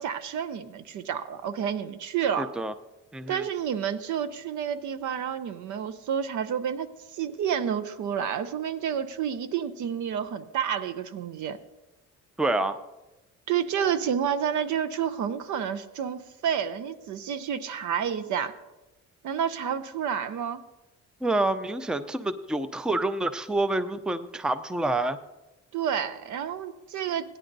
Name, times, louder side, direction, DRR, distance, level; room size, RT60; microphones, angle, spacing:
voice 1, 0.0-2.5 3.3-11.6 13.5-18.5 19.2-20.6 25.7-27.4, right 8 dB, 75° right, 12 dB, 0.7 m, -30 dB
voice 2, 2.4-2.7 3.1-3.4 12.4-12.8 21.2-25.2, right 2 dB, 5° right, 12 dB, 0.4 m, -27 dB
17.5 x 10.0 x 2.6 m, 1.0 s
cardioid pair, 90°, 30 cm